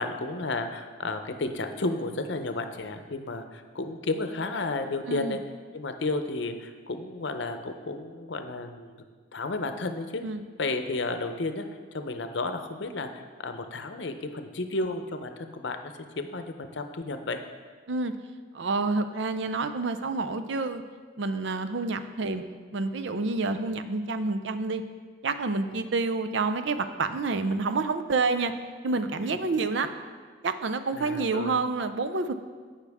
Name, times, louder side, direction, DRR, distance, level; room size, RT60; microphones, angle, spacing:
voice 1, 0.0-5.4 5.7-9.0 9.3-10.2 10.6-11.6 11.9-15.8 16.2-17.4 29.3-29.4 30.9-31.6, left 2 dB, 65° left, 7 dB, 0.7 m, -32 dB
voice 2, 18.5-20.8 21.2-22.4 22.7-24.8 25.2-28.5 28.8-29.9 30.4-32.3, right 3 dB, 70° right, 9 dB, 0.6 m, -28 dB
16.5 x 5.7 x 3.5 m, 1.5 s
head